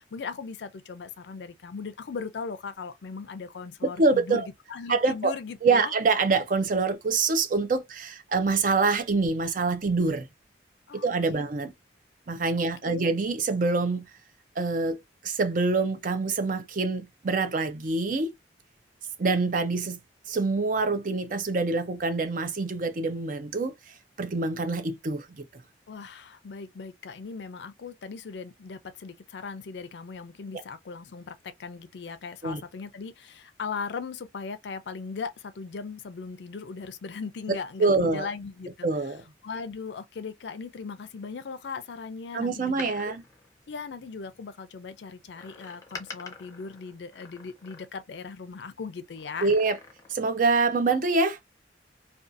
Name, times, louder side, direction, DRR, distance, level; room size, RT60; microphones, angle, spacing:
voice 1, 0.0-5.9 10.9-11.1 11.3-11.4 12.8-13.1 25.9-38.9 39.4-43.2 43.7-49.5, left 5 dB, 70° left, 0.4 m, -38 dB
voice 2, 3.8-4.5 4.9-5.3 5.6-10.3 11.0-11.7 12.3-14.1 14.6-18.3 19.2-20.0 20.3-23.7 24.2-25.4 32.4-32.6 37.5-38.3 38.8-39.2 42.3-43.2 49.4-49.8 50.1-51.4, right 3 dB, 45° right, 0.5 m, -25 dB
Door, 42.6-44.4 45.3-48.2 49.1-50.3 50.6-50.7, left 4 dB, 20° left, 0.5 m, -46 dB
2.6 x 2.3 x 2.5 m
head